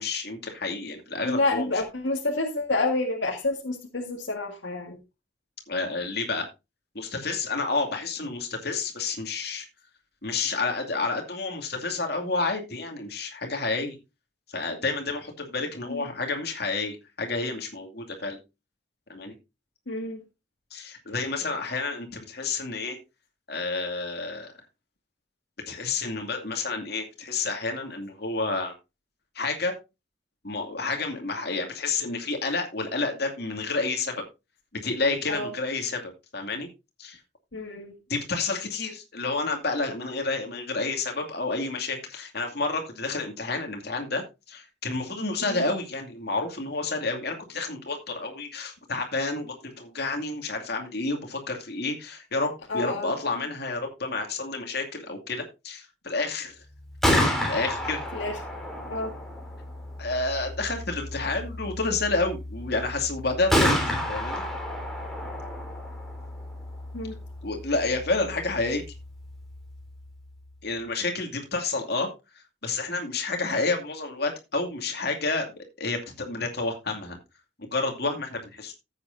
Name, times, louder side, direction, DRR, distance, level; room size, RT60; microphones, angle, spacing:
voice 1, 0.0-1.6 5.7-6.5 6.9-9.7 10.2-14.0 14.5-18.4 19.1-19.3 20.7-23.0 23.5-24.5 25.7-28.7 29.3-29.8 30.4-34.1 34.8-36.7 37.0-37.2 38.1-56.5 57.4-58.0 60.0-63.7 64.1-64.4 67.4-68.8 70.6-72.1 72.3-77.2 77.6-78.7, left 3 dB, 60° left, 3 dB, 2.5 m, -30 dB
voice 2, 1.2-5.0 15.9-16.0 19.9-20.2 35.3-35.5 37.5-37.9 45.4-45.6 52.7-53.1 58.1-58.3 58.9-59.1 66.9-67.2, left 2 dB, 80° left, 2 dB, 1.9 m, -29 dB
Gunshot gunfire, 56.8-70.6, left 1 dB, ahead, 3.4 m, -31 dB
15.0 x 8.1 x 2.7 m, 0.26 s
head